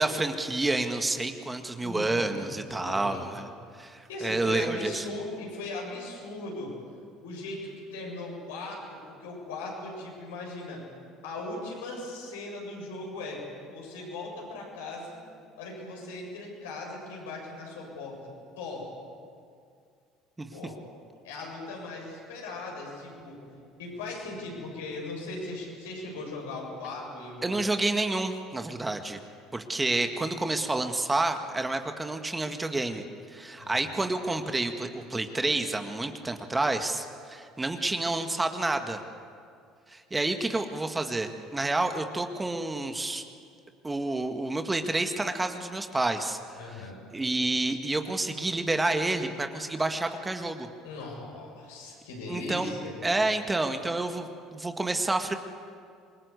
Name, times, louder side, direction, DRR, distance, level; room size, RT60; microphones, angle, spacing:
voice 1, 0.0-3.5 3.8-5.1 20.4-20.5 27.4-29.2 29.5-39.0 39.9-43.2 43.8-46.4 46.7-46.8 47.1-50.7 52.3-52.7 53.0-55.3, right 2 dB, 15° right, 6 dB, 1.9 m, -29 dB
voice 2, 1.8-3.5 3.8-6.7 7.2-10.8 11.2-15.2 15.6-18.2 18.6-18.9 20.5-20.8 21.2-23.4 23.8-27.6 33.6-33.9 46.5-47.0 50.8-52.9, left 2 dB, 75° left, -1 dB, 7.6 m, -39 dB
26.5 x 22.0 x 8.4 m, 2.3 s
hypercardioid pair, 60°, 0 cm